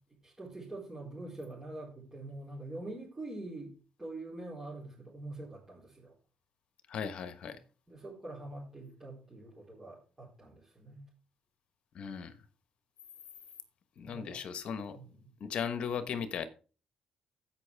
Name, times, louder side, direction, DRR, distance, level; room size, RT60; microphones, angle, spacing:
voice 1, 0.2-6.1 7.9-11.1 14.0-14.4 14.9-15.3, right 2 dB, 15° right, 4.3 m, -45 dB
voice 2, 6.9-7.6 11.9-12.4 14.0-15.0 15.4-16.5, left 7 dB, 60° left, 1.2 m, -37 dB
15.0 x 5.9 x 3.5 m
cardioid pair, 100°, 2 cm